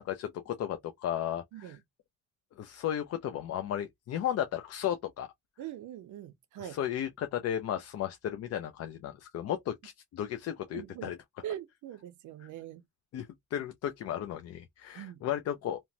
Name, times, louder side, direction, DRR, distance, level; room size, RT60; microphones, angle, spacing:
voice 1, 0.0-1.8 2.6-5.3 6.6-11.2 12.4-12.5 13.1-15.8, left 10 dB, 55° left, 0.4 m, -34 dB
voice 2, 5.6-6.8 10.7-11.1 11.4-12.8 14.9-15.2, right 12 dB, 75° right, 0.6 m, -42 dB
2.9 x 2.1 x 2.6 m
cardioid pair, 90°, 30 cm